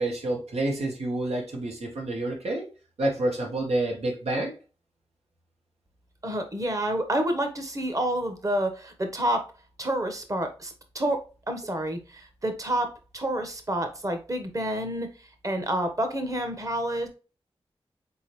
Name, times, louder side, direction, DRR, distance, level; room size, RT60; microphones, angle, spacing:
voice 1, 0.0-2.7 3.0-4.5, right 1 dB, 80° right, 0 dB, 1.5 m, -28 dB
voice 2, 6.2-9.4 9.8-11.2 11.5-12.9 13.1-15.1 15.4-17.1, right 1 dB, 30° right, 6 dB, 1.1 m, -28 dB
4.0 x 3.8 x 3.1 m, 0.33 s
cardioid pair, 50°, 11 cm